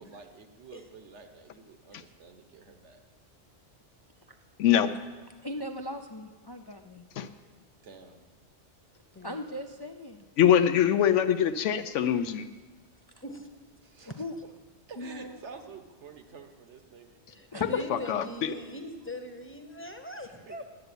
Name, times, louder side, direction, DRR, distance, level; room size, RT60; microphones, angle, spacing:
voice 1, 0.0-3.0 7.8-8.2 13.8-14.1 14.9-17.2 20.5-20.6, right 5 dB, 70° right, 6 dB, 1.5 m, -49 dB
voice 2, 4.6-4.9 7.2-7.3 10.4-12.5 17.9-18.5, left 9 dB, 80° left, 11 dB, 0.9 m, -23 dB
voice 3, 5.4-7.1 9.2-10.3 14.2-14.3 15.0-15.4 17.5-17.8 20.5-20.6, left 1 dB, 40° left, 6 dB, 0.3 m, -38 dB
voice 4, 17.3-20.5, left 1 dB, 10° left, 5 dB, 0.9 m, -41 dB
9.7 x 8.0 x 9.6 m, 1.3 s
omnidirectional pair, 1.2 m